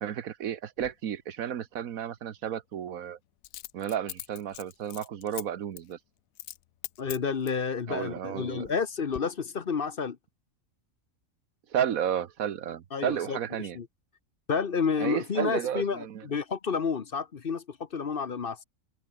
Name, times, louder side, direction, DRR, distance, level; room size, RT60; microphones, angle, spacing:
voice 1, 0.0-3.2 3.7-6.0 7.9-8.7 11.7-13.8 15.0-16.2, right 9 dB, 85° right, 1.5 m, -32 dB
Coin (dropping), 0.8-0.9 3.4-5.4 5.8-5.9 6.4-6.6 6.8-7.6 8.3-8.8 9.1-9.2, left 14 dB, 85° left, 1.1 m, -41 dB
voice 2, 7.0-10.2 12.9-13.4 13.7-13.9 14.5-18.6, left 6 dB, 45° left, 1.1 m, -30 dB
omnidirectional pair, 1.4 m